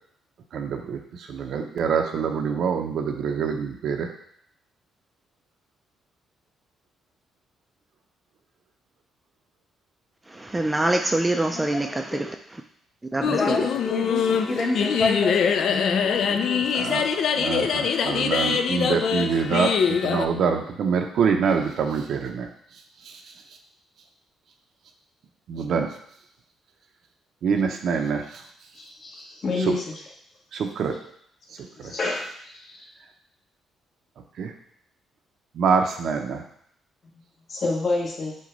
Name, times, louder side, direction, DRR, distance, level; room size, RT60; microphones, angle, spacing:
voice 1, 0.5-4.1 16.7-17.1 17.3-22.5 23.0-23.2 25.5-25.9 27.4-28.4 29.6-29.7 30.5-31.0 31.8-31.9 34.4-34.5 35.5-36.4, right 6 dB, 70° right, 4 dB, 0.6 m, -25 dB
voice 2, 10.3-12.4 13.1-13.7, right 2 dB, 15° right, 4 dB, 0.3 m, -25 dB
sound 1, 13.2-20.3, left 7 dB, 65° left, 0.3 m, -24 dB
voice 3, 13.3-16.9, left 3 dB, 30° left, -1 dB, 1.1 m, -29 dB
voice 4, 28.7-29.8 31.8-32.3 32.7-32.8 37.5-38.4, left 3 dB, 50° left, -2 dB, 1.3 m, -27 dB
6.2 x 2.2 x 3.9 m, 0.67 s
cardioid pair, 90°, 0 cm